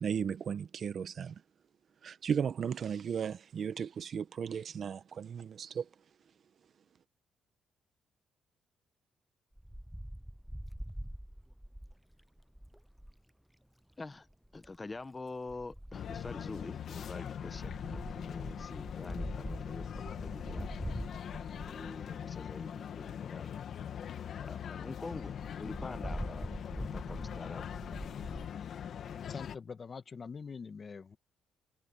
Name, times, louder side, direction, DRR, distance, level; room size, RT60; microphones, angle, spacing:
voice 1, 0.0-1.4 2.0-5.9, right 7 dB, 55° right, 1.2 m, -35 dB
Wind, 9.6-13.2 14.3-14.8 15.5-22.5 23.1-23.2 23.4-23.5 23.8-23.9 24.2-24.3 24.5-24.7 25.1-28.5, equal, 5° right, 0.5 m, -44 dB
voice 2, 14.5-20.8 21.7-23.6 24.4-26.5 26.7-27.7, left 3 dB, 25° left, 1.1 m, -46 dB
sound 1, 15.9-29.6, left 8 dB, 65° left, 2.1 m, -42 dB
voice 3, 29.3-31.2, left 5 dB, 40° left, 1.5 m, -44 dB
cardioid pair, 90°, 0 cm